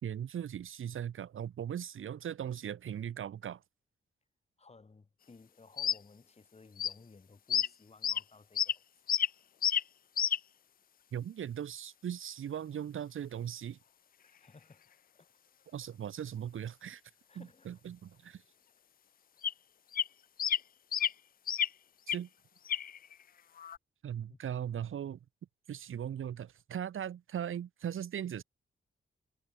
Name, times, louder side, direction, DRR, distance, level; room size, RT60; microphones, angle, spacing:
voice 1, 0.0-3.6 11.1-13.8 15.7-17.0 17.3-18.4 22.1-22.3 24.0-25.2 25.7-28.4, right 9 dB, 85° right, 1.3 m, -39 dB
voice 2, 4.6-8.8 14.2-15.3 17.3-17.8 24.3-24.4, left 4 dB, 30° left, 7.6 m, -58 dB
sound 1, 5.8-6.0 6.8-6.9 7.5-7.7 8.0-8.2 8.6-8.7 9.1-9.3 9.6-9.8 10.2-10.4 19.4-19.5 19.9-20.1 20.4-20.6 20.9-21.1 21.5-21.7 22.1-22.2 22.7-23.1 23.6-23.8, left 9 dB, 45° left, 0.4 m, -30 dB
wide cardioid pair, 140°, 21 cm